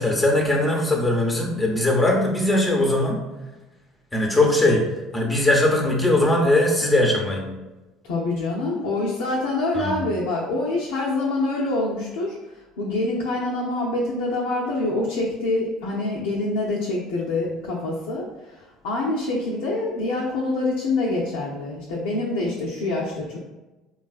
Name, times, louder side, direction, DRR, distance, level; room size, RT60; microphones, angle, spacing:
voice 1, 0.0-3.2 4.1-4.9 5.1-7.5 9.7-10.0, left 1 dB, 15° left, 0 dB, 0.7 m, -20 dB
voice 2, 8.0-23.4, left 2 dB, 85° left, -5 dB, 0.6 m, -26 dB
3.8 x 2.4 x 2.4 m, 1.1 s
supercardioid pair, 80°, 0 cm